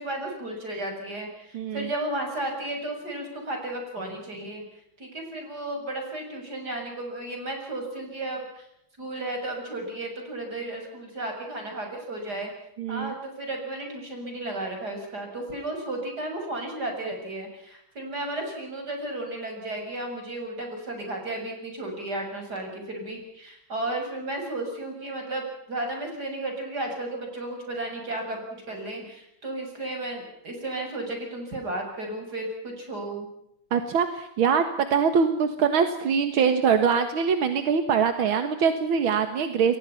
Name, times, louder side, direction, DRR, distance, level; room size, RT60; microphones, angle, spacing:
voice 1, 0.0-4.6 5.0-8.7 9.0-12.5 12.9-33.3, right 2 dB, 50° right, 3 dB, 7.7 m, -33 dB
voice 2, 1.5-1.9 12.8-13.1 33.7-39.8, right 6 dB, 85° right, 8 dB, 2.3 m, -23 dB
28.0 x 22.5 x 5.8 m, 0.75 s
omnidirectional pair, 2.2 m